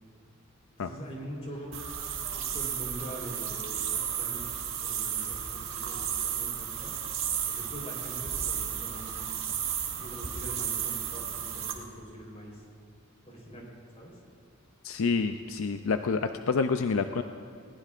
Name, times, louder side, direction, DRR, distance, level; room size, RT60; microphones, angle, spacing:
voice 1, 0.8-1.8 2.3-6.9 7.4-9.4 10.0-12.6 13.3-13.7 13.9-14.1, right 1 dB, 30° left, -2 dB, 3.8 m, -43 dB
sound 1, 1.7-11.7, right 8 dB, 70° right, 1.8 m, -33 dB
voice 2, 14.8-17.2, left 4 dB, 80° left, 8 dB, 0.5 m, -28 dB
20.5 x 19.0 x 2.5 m, 2.3 s
head